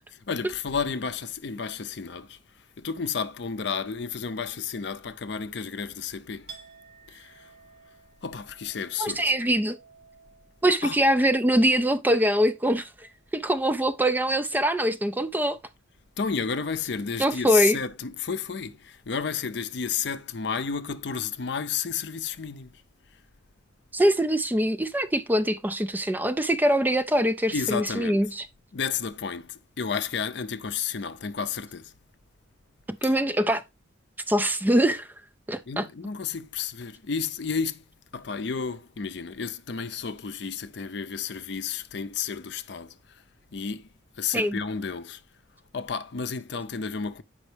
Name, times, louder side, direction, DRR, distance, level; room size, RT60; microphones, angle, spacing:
voice 1, 0.1-6.5 7.1-7.5 8.2-9.3 10.8-11.0 16.2-22.8 27.5-28.2 28.7-31.9 33.0-33.2 35.7-37.8 38.1-43.2 43.5-43.9 44.2-45.2 45.7-47.2, left 6 dB, 55° left, 0.5 m, -32 dB
Chink clink, 6.5-14.2 14.5-15.2, right 5 dB, 75° right, 1.6 m, -54 dB
voice 2, 9.0-9.8 10.6-15.6 17.2-17.8 23.9-28.5 33.0-33.6 34.3-35.1 35.5-35.9 44.3-44.6, right 1 dB, 10° right, 0.3 m, -23 dB
7.9 x 5.3 x 3.3 m
head